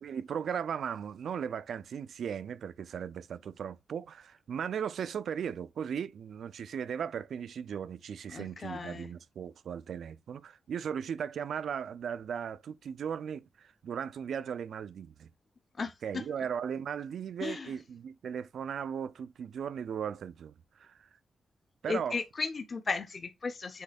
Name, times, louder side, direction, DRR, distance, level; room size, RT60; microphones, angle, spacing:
voice 1, 0.0-15.3 16.0-21.1 21.8-22.2, right 7 dB, 70° right, 0.5 m, -37 dB
voice 2, 8.3-9.1 15.8-16.2 17.4-17.7 21.9-23.8, left 4 dB, 35° left, 0.8 m, -35 dB
8.3 x 3.2 x 4.1 m
wide cardioid pair, 170°, 0 cm